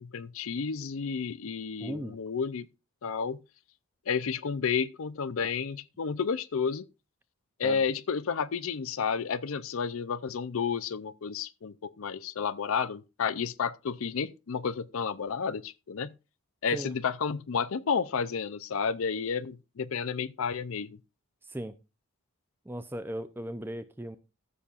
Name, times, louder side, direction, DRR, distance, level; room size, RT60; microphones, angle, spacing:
voice 1, 0.0-2.7 3.0-3.4 4.1-6.9 7.6-16.1 16.6-21.0, left 6 dB, 65° left, 0.5 m, -31 dB
voice 2, 1.8-2.2 7.6-7.8 16.7-17.0 21.4-21.7 22.7-24.2, right 1 dB, 10° right, 0.5 m, -37 dB
15.0 x 7.0 x 2.5 m
head